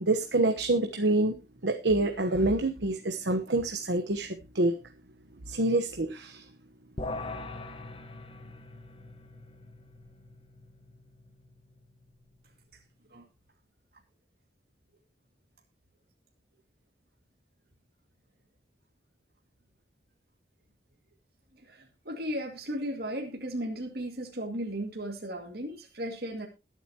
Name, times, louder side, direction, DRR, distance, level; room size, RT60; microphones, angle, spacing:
voice 1, 0.0-1.3 1.6-4.7 5.5-6.4, right 2 dB, 85° right, 7 dB, 1.1 m, -27 dB
sound 1, 7.0-12.5, left 2 dB, 30° left, 1.1 m, -43 dB
voice 2, 21.5-26.5, equal, 60° right, 2 dB, 2.4 m, -36 dB
21.5 x 8.1 x 2.9 m, 0.27 s
head